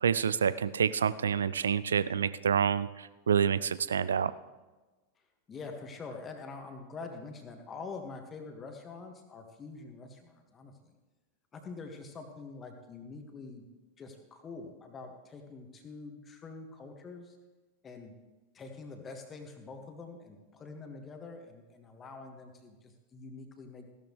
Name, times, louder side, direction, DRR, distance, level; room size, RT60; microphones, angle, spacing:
voice 1, 0.0-4.3, right 7 dB, 70° right, 17 dB, 0.4 m, -28 dB
voice 2, 5.5-10.9 11.5-13.7 14.0-17.4 17.8-18.1 18.5-23.9, left 4 dB, 20° left, 4 dB, 1.8 m, -45 dB
16.0 x 12.0 x 3.2 m, 1.2 s
figure-of-eight pair, 90°, 0 cm